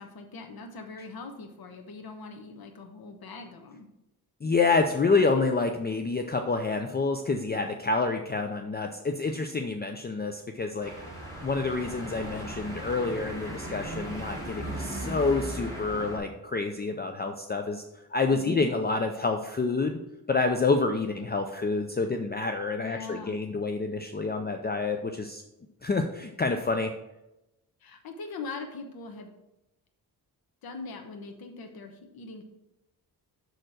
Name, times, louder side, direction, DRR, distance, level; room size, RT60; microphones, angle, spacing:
voice 1, 0.0-3.9 18.3-18.7 22.8-23.4 27.8-29.3 30.6-32.4, left 4 dB, 65° left, 4 dB, 1.1 m, -41 dB
voice 2, 4.4-10.9 11.4-17.8 18.1-20.0 20.3-25.4 25.8-26.9, left 3 dB, 25° left, 5 dB, 0.5 m, -28 dB
sound 1, 10.8-16.2, right 1 dB, 10° left, 2.9 m, -37 dB
6.4 x 4.4 x 6.3 m, 0.91 s
cardioid pair, 105°, 40 cm